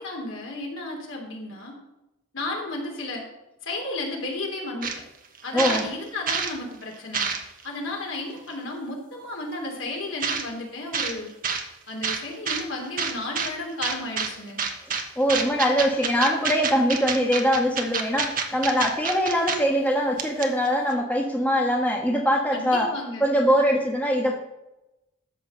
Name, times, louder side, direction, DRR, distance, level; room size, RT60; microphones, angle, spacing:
voice 1, 0.0-1.7 2.3-3.2 3.6-4.9 5.4-7.3 7.6-11.3 11.9-14.6 22.5-23.3, left 2 dB, 80° left, 0 dB, 3.1 m, -33 dB
sound 1, 4.8-5.0 5.3-6.5 6.9-7.7 8.5-8.6 10.2-10.5 10.9-11.1 11.4-11.6 12.0-12.6 13.0-13.5 13.8-14.3 14.6-15.0 15.3-19.6 19.9-20.0 20.2-20.7, right 6 dB, 45° right, 1.2 m, -27 dB
voice 2, 5.5-5.8 15.2-22.9 23.2-24.4, equal, 10° left, 0 dB, 1.3 m, -22 dB
13.5 x 4.7 x 7.5 m, 0.94 s
head